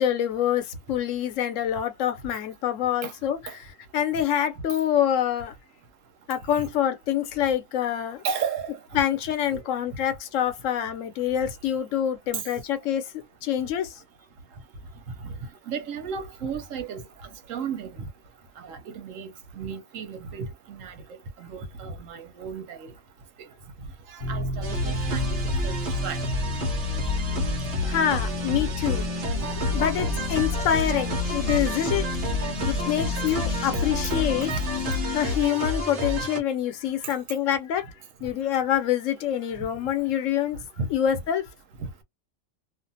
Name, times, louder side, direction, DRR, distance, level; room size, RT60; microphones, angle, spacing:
voice 1, 0.0-3.4 3.9-5.5 6.3-8.2 8.9-13.1 13.4-14.0 27.8-29.1 29.5-32.0 32.7-34.5 35.1-37.9 38.2-40.6 40.9-41.4, left 10 dB, 80° left, 1.0 m, -26 dB
voice 2, 8.2-9.0 9.5-9.6 12.3-12.4 15.2-15.3 15.7-18.1 18.6-22.9 23.4-23.5 24.1-25.4 25.6-25.7 26.0-26.2 37.0-37.1 40.8-40.9 41.1-41.2 41.8-41.9, right 6 dB, 85° right, 1.1 m, -34 dB
sound 1, 24.2-35.4, left 3 dB, 60° left, 0.7 m, -31 dB
sound 2, 24.6-36.4, equal, 65° right, 1.1 m, -30 dB
2.5 x 2.4 x 2.6 m
omnidirectional pair, 1.3 m